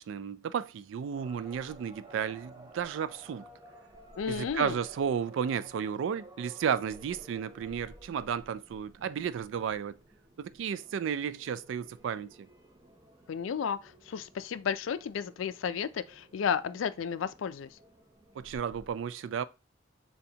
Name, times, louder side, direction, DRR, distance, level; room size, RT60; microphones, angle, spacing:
voice 1, 0.0-3.4 4.3-10.0 10.4-12.5 18.4-19.4, right 7 dB, 70° right, 0.3 m, -33 dB
sound 1, 1.1-18.9, right 1 dB, 20° right, 0.6 m, -55 dB
voice 2, 4.2-4.8 13.3-17.7, left 7 dB, 80° left, 0.4 m, -33 dB
6.7 x 2.3 x 2.8 m
head